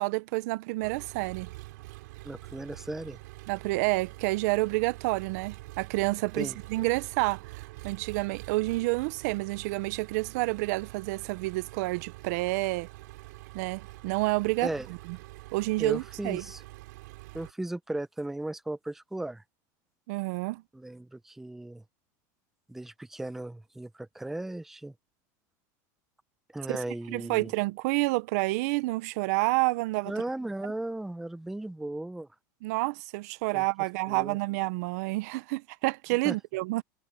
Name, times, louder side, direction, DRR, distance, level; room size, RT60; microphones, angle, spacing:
voice 1, 0.0-1.5 3.5-12.9 13.5-14.7 15.1-15.2 15.5-16.4 20.1-20.6 26.7-30.1 32.6-36.8, right 22 dB, 65° right, 0.6 m, -29 dB
Engine, 0.8-17.5, right 20 dB, 80° right, 2.7 m, -46 dB
voice 2, 2.2-3.2 6.4-6.6 14.6-14.9 15.8-16.6 17.3-19.4 20.7-21.8 22.7-24.9 26.5-27.5 30.1-32.3 33.5-33.7 34.1-34.4 36.2-36.3, right 1 dB, 5° right, 0.6 m, -36 dB
supercardioid pair, 155°, 9 cm